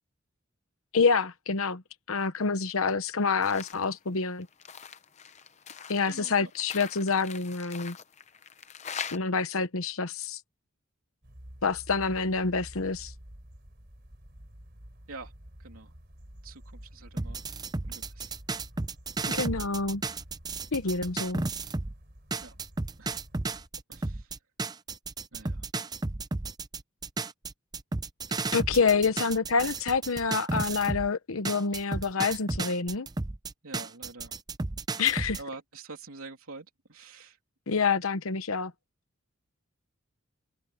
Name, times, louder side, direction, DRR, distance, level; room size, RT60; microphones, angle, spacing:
voice 1, 0.9-1.8 2.1-4.5 5.9-8.0 9.1-10.4 11.6-13.1 19.3-20.0 20.7-21.4 28.5-33.1 35.0-35.4 37.7-38.7, left 4 dB, 75° left, 1.0 m, -27 dB
sound 1, 3.4-3.8 4.2-9.2, left 7 dB, 30° left, 0.8 m, -42 dB
voice 2, 6.0-6.5 15.1-15.3 15.6-15.9 16.4-17.5 17.8-18.3 22.4-22.6 23.0-23.1 23.9-24.4 25.3-25.7 29.3-29.6 33.6-34.3 35.4-37.4, right 3 dB, 80° right, 3.1 m, -46 dB
sound 2, 11.2-23.7, equal, 50° right, 3.6 m, -50 dB
sound 3, 17.2-21.9 22.3-31.1 31.4-35.4, right 3 dB, 20° right, 0.5 m, -33 dB
head